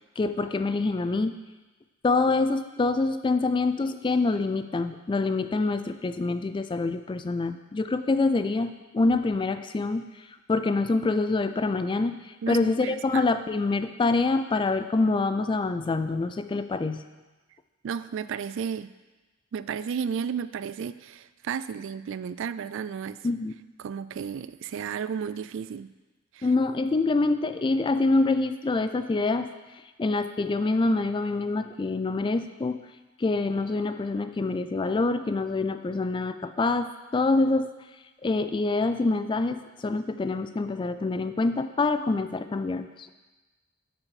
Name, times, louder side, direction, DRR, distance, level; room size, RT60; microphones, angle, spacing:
voice 1, 0.2-1.4 2.0-10.1 10.5-17.0 23.2-23.5 26.4-29.5 30.0-32.8 33.2-37.7 38.2-43.1, left 3 dB, 25° left, 10 dB, 0.3 m, -26 dB
voice 2, 12.4-13.3 17.8-18.9 19.5-23.2 23.8-25.9 26.3-26.5, right 7 dB, 60° right, 14 dB, 0.3 m, -33 dB
8.6 x 6.1 x 4.8 m, 1.2 s
head